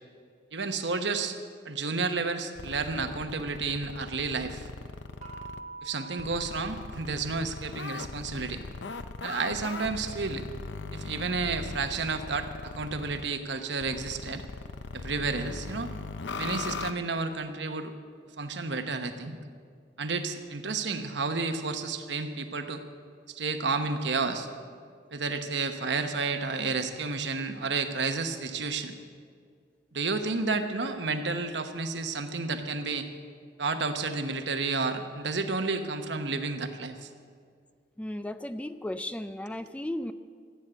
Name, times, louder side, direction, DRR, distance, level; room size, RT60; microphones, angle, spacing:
voice 1, 0.5-1.4 1.6-4.7 5.8-8.6 9.2-10.5 10.9-14.4 14.9-15.9 16.4-17.9 18.4-19.4 20.0-22.8 23.3-24.5 25.1-28.9 29.9-33.1 33.6-37.1, right 4 dB, 80° right, 7 dB, 1.1 m, -31 dB
sound 1, 2.6-5.6 6.2-13.3 13.8-16.9, left 4 dB, 90° left, 0.6 m, -39 dB
sound 2, 5.2-7.9, right 4 dB, 35° right, 4.0 m, -46 dB
voice 2, 38.0-40.1, left 1 dB, 5° left, 11 dB, 0.4 m, -35 dB
14.5 x 9.1 x 8.1 m, 2.1 s
head